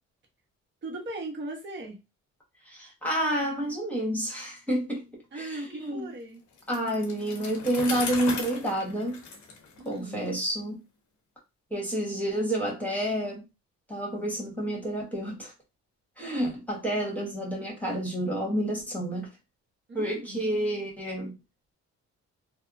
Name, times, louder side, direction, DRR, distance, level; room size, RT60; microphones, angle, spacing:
voice 1, 0.8-2.0 5.3-6.4 9.8-10.2 19.9-20.4, right 2 dB, 40° right, 1.0 m, -38 dB
voice 2, 2.6-5.1 5.3-6.1 6.7-9.2 9.8-10.8 11.7-13.4 13.9-15.5 16.2-19.3 19.9-21.3, right 1 dB, 5° left, 1.2 m, -29 dB
Bicycle, 6.6-10.4, left 4 dB, 75° left, 0.9 m, -37 dB
2.7 x 2.0 x 2.5 m
cardioid pair, 90°, 30 cm